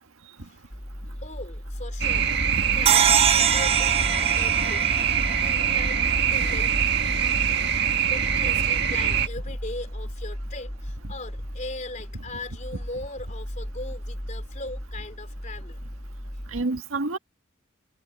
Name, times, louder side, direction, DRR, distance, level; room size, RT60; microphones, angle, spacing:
voice 1, 0.4-0.7 1.2-2.3 2.8-4.9 5.3-6.1 6.3-6.8 8.0-15.8, left 2 dB, 35° left, 3.6 m, -39 dB
sound 1, 0.7-16.6, equal, 15° left, 1.9 m, -36 dB
sound 2, 2.0-9.3, right 7 dB, 50° right, 1.6 m, -23 dB
sound 3, 2.9-6.2, right 9 dB, 30° right, 0.4 m, -24 dB
voice 2, 16.5-17.2, right 2 dB, 90° right, 1.6 m, -29 dB
head